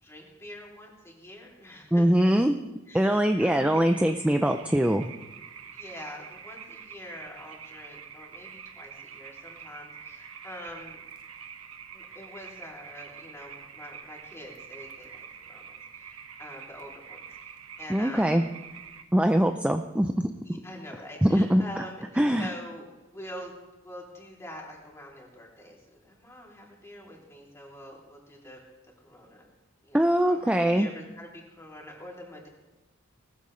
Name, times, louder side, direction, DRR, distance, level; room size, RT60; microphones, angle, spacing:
voice 1, 0.0-2.3 2.9-3.9 5.7-11.0 11.9-18.4 20.4-23.6 23.8-28.6 29.0-29.5 29.8-32.5, left 1 dB, 15° left, -2 dB, 3.0 m, -45 dB
voice 2, 1.9-2.5 2.9-5.1 17.9-18.4 19.1-20.3 21.2-21.6 22.2-22.5 29.9-30.9, equal, 5° right, 6 dB, 0.5 m, -22 dB
sound 1, 3.3-19.0, right 7 dB, 75° right, 1.1 m, -46 dB
19.5 x 14.0 x 3.2 m, 1.1 s
head